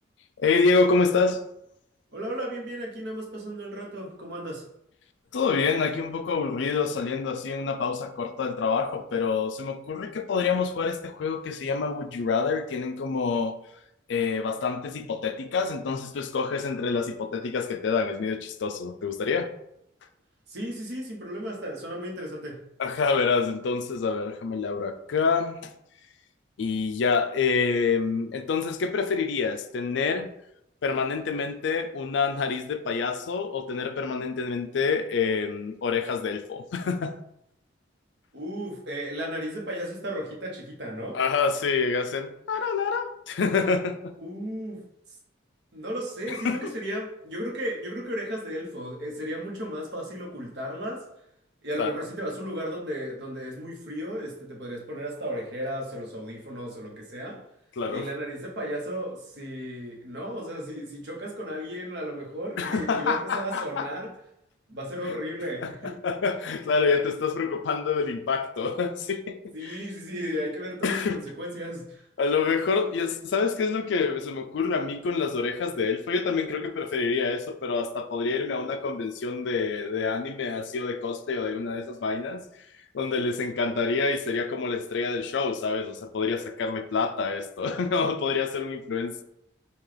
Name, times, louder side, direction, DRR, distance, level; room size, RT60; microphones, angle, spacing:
voice 1, 0.4-1.4 5.3-13.5 14.1-19.5 22.8-25.7 26.6-30.3 30.8-37.2 41.1-44.2 46.3-46.7 51.8-51.9 57.8-58.1 62.6-63.9 65.6-69.8 70.8-71.2 72.2-82.4 82.9-89.2, left 4 dB, 65° left, 0.4 m, -27 dB
voice 2, 2.1-4.7 20.5-22.6 38.3-41.2 44.2-44.9 45.7-51.1 51.6-57.4 57.9-64.1 64.7-66.0 69.5-72.0 72.7-72.9, equal, 60° right, 0.9 m, -34 dB
5.6 x 2.4 x 3.3 m
head